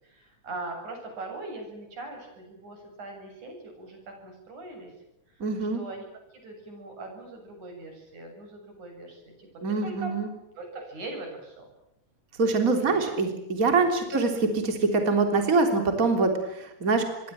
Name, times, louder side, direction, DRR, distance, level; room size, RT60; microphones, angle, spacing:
voice 1, 0.0-4.9 5.7-6.1 6.3-9.5 9.8-10.1 10.6-11.6 12.8-13.1 14.1-14.2, right 2 dB, 80° right, 4 dB, 9.1 m, -41 dB
voice 2, 5.4-5.8 9.6-10.3 12.4-17.1, right 3 dB, 25° right, 5 dB, 3.7 m, -24 dB
26.0 x 23.0 x 7.6 m, 0.86 s
omnidirectional pair, 3.4 m